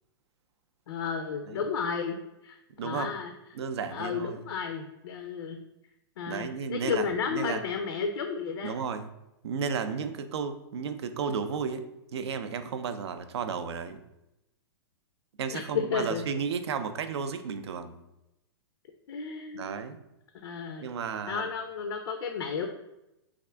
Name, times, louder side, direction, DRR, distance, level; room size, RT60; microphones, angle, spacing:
voice 1, 0.9-2.2 2.4-2.6 2.8-3.3 3.9-5.6 6.2-8.8 15.5-16.2 19.1-19.8 20.4-20.9 21.3-22.7, left 6 dB, 80° left, 6 dB, 0.4 m, -32 dB
voice 2, 2.8-3.1 3.5-4.4 6.3-7.6 8.6-9.1 9.4-11.8 12.1-14.0 15.4-18.0 19.5-20.0 20.8-21.5, right 6 dB, 85° right, 10 dB, 0.4 m, -33 dB
3.5 x 2.5 x 3.3 m, 0.90 s
hypercardioid pair, 150°, 14 cm